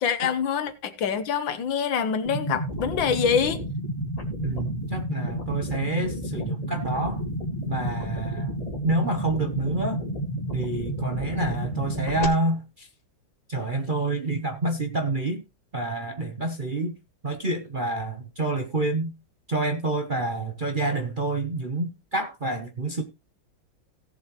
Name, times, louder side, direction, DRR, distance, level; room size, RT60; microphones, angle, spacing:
voice 1, 0.0-3.6, left 7 dB, 70° left, 1.8 m, -25 dB
sound 1, 2.2-12.2, right 1 dB, 20° left, 1.9 m, -31 dB
voice 2, 4.4-7.2 7.7-8.5 8.8-10.0 10.5-12.9 13.5-15.4 15.7-17.0 17.2-19.1 19.5-23.0, right 2 dB, 35° right, 0.9 m, -28 dB
17.5 x 7.3 x 3.1 m
omnidirectional pair, 2.2 m